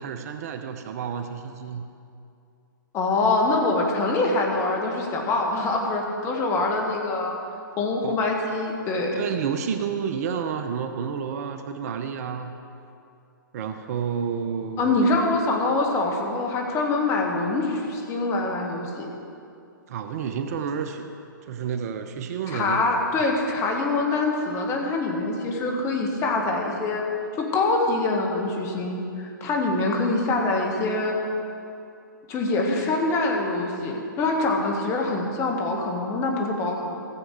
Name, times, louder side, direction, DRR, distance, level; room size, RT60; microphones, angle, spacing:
voice 1, 0.0-1.9 8.0-8.2 9.1-12.5 13.5-15.2 19.9-21.1 21.4-22.9, right 7 dB, 45° right, 8 dB, 0.8 m, -30 dB
voice 2, 2.9-7.4 7.8-9.2 14.8-19.1 22.5-27.0 27.4-31.1 32.3-37.0, left 2 dB, 25° left, 1 dB, 1.9 m, -24 dB
15.5 x 7.7 x 4.9 m, 2.5 s
figure-of-eight pair, 120°, 11 cm